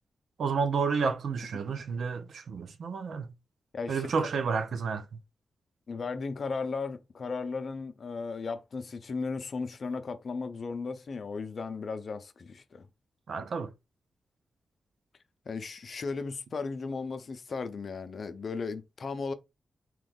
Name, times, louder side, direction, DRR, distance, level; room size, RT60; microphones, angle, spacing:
voice 1, 0.4-3.3 3.9-5.1 13.3-13.7, right 5 dB, 75° right, 0.5 m, -30 dB
voice 2, 3.7-4.3 5.9-12.9 15.5-19.3, left 4 dB, 55° left, 0.5 m, -36 dB
3.0 x 2.2 x 3.4 m
cardioid pair, 75°, 0 cm